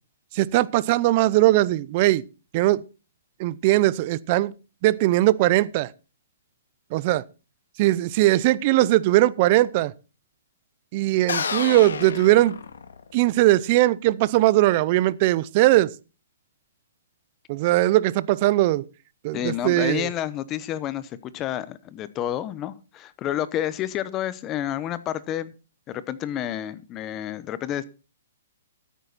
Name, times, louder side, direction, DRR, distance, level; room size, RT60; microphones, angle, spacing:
voice 1, 0.3-2.2 2.5-2.8 3.4-4.5 4.8-5.9 6.9-7.2 7.8-9.9 10.9-12.6 13.1-15.9 17.5-18.8 19.2-20.1, right 16 dB, 35° right, 0.6 m, -20 dB
sound 1, 11.3-13.2, left 6 dB, 80° left, 2.0 m, -30 dB
voice 2, 19.3-25.5 25.9-27.8, left 11 dB, 20° left, 0.9 m, -29 dB
13.0 x 9.4 x 4.1 m
hypercardioid pair, 160°, 0 cm